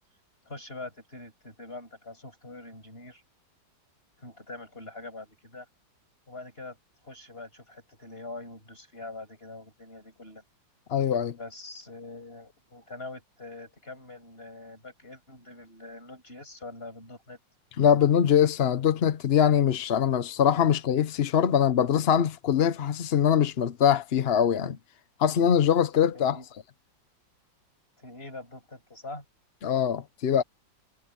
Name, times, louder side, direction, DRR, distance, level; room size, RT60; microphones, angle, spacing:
voice 1, 0.4-3.2 4.2-5.7 6.3-6.8 7.0-10.4 11.4-17.4 26.1-26.5 28.0-29.2, left 2 dB, 30° left, 8.2 m, -43 dB
voice 2, 10.9-11.4 17.8-24.8 25.2-26.4 29.6-30.4, left 8 dB, 55° left, 0.7 m, -23 dB
omnidirectional pair, 2.0 m